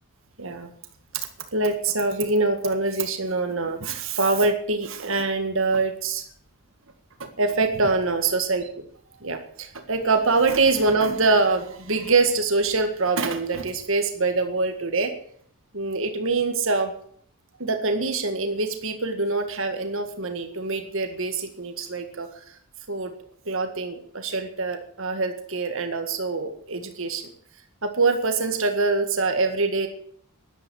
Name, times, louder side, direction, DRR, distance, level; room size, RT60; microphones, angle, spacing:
voice 1, 1.5-6.2 7.2-8.6 9.2-15.1 15.7-16.9 17.6-22.3 22.9-23.1 23.5-27.2 27.8-29.9, right 3 dB, 60° right, 6 dB, 1.8 m, -24 dB
11.5 x 11.0 x 8.7 m, 0.62 s
head